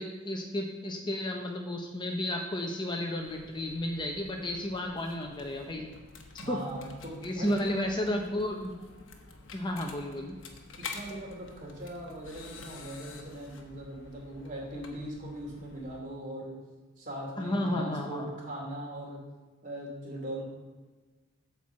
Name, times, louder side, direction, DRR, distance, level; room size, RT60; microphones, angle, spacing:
voice 1, 0.0-5.8 6.5-6.6 7.2-8.8 9.5-10.4 17.4-18.3, left 1 dB, 25° left, 2 dB, 0.7 m, -32 dB
sound 1, 3.2-16.0, left 4 dB, 70° left, 1.1 m, -49 dB
voice 2, 6.4-7.6 10.8-16.6 17.0-19.2 19.6-20.4, right 1 dB, 40° right, -2 dB, 2.7 m, -40 dB
9.0 x 4.6 x 7.1 m, 1.3 s
head